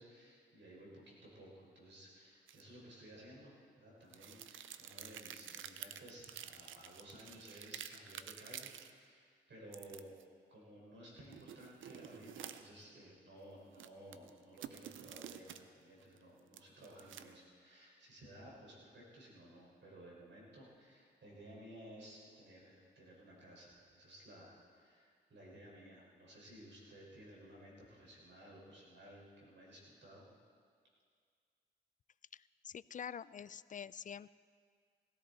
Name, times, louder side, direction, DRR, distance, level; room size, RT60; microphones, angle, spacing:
voice 1, 0.0-10.1 10.5-30.2, right 1 dB, 70° right, -4 dB, 5.0 m, -56 dB
sound 1, 2.5-2.6 4.1-8.9 9.7-10.2 11.3-12.8 13.7-15.6 16.0-17.4, right 9 dB, 85° right, 0.6 m, -50 dB
voice 2, 32.3-34.4, left 8 dB, 40° left, 19 dB, 0.4 m, -47 dB
18.5 x 14.0 x 4.1 m, 2.1 s
cardioid pair, 55°, 20 cm